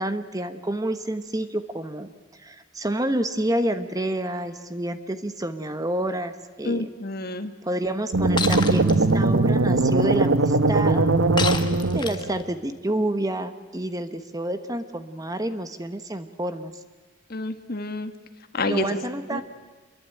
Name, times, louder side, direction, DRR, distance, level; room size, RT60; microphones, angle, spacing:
voice 1, 0.0-2.1 2.4-6.3 6.6-6.9 7.6-11.1 11.9-16.7 18.6-19.4, right 1 dB, 20° right, 9 dB, 1.1 m, -28 dB
voice 2, 6.6-7.5 17.3-18.1 18.6-19.0 19.3-19.4, left 2 dB, 50° left, 8 dB, 1.7 m, -28 dB
sound 1, 8.1-12.4, right 2 dB, 80° right, 1.1 m, -20 dB
Shatter, 8.4-8.9 11.4-12.4, left 5 dB, 25° left, 1.6 m, -28 dB
27.0 x 22.5 x 9.1 m, 1.3 s
head